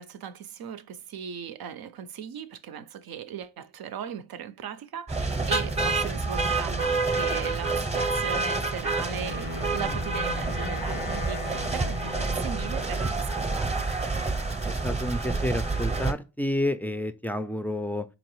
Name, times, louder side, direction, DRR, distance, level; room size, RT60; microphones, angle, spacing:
voice 1, 0.0-13.8, right 8 dB, 70° right, 0.5 m, -38 dB
sound 1, 5.1-16.1, right 3 dB, 15° right, 0.7 m, -28 dB
Wind instrument woodwind instrument, 9.0-13.0, left 11 dB, 80° left, 0.7 m, -40 dB
voice 2, 14.6-18.1, left 1 dB, 5° left, 0.4 m, -30 dB
3.9 x 2.9 x 3.0 m
cardioid pair, 50°, 38 cm